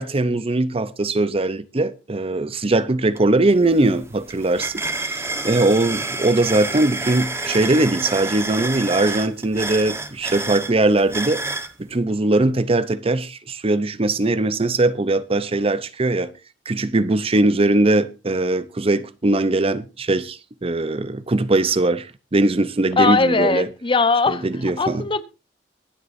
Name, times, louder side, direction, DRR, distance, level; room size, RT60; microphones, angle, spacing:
voice 1, 0.0-11.4 11.8-16.3 16.7-22.1 22.3-23.7 24.3-25.1, right 2 dB, 30° right, 0.7 m, -20 dB
sound 1, 3.2-3.3 3.6-11.7, right 2 dB, 15° right, 1.2 m, -29 dB
voice 2, 23.0-24.5 24.8-25.2, left 4 dB, 30° left, 0.9 m, -19 dB
23.5 x 8.2 x 2.6 m
head